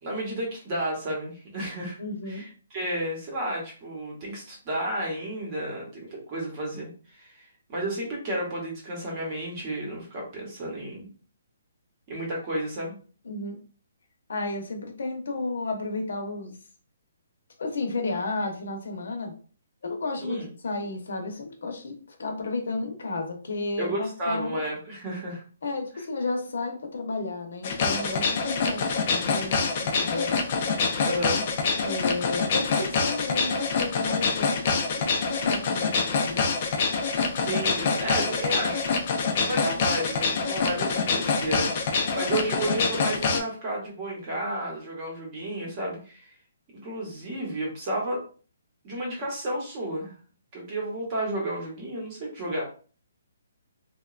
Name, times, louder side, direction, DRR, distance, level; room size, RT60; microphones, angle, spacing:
voice 1, 0.0-2.0 2.3-11.1 12.1-12.9 20.2-20.5 23.8-25.4 31.0-31.5 37.4-46.3 46.8-48.2 48.8-50.1 50.5-52.6, right 1 dB, 25° right, -2 dB, 0.8 m, -32 dB
voice 2, 2.0-2.5 13.2-13.6 14.3-16.6 17.6-19.3 19.8-24.6 25.6-30.7 31.8-36.5, left 3 dB, 70° left, 4 dB, 0.8 m, -33 dB
sound 1, 27.6-43.4, left 4 dB, 30° left, 0.4 m, -26 dB
2.9 x 2.2 x 2.3 m, 0.39 s
hypercardioid pair, 175°, 0 cm